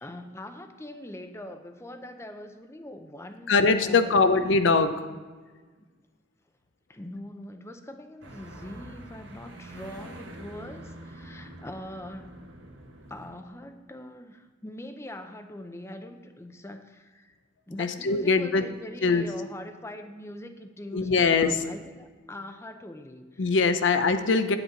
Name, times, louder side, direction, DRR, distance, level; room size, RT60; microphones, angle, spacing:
voice 1, 0.0-4.5 5.8-5.9 6.9-12.5 13.1-17.4 17.7-23.6, left 1 dB, 15° left, 7 dB, 0.6 m, -42 dB
voice 2, 3.5-5.0 17.8-18.6 19.0-19.3 20.9-21.6 23.4-24.6, left 4 dB, 75° left, 9 dB, 0.6 m, -22 dB
sound 1, 8.2-13.3, right 1 dB, 80° right, 1.5 m, -45 dB
9.2 x 8.8 x 4.0 m, 1.4 s
head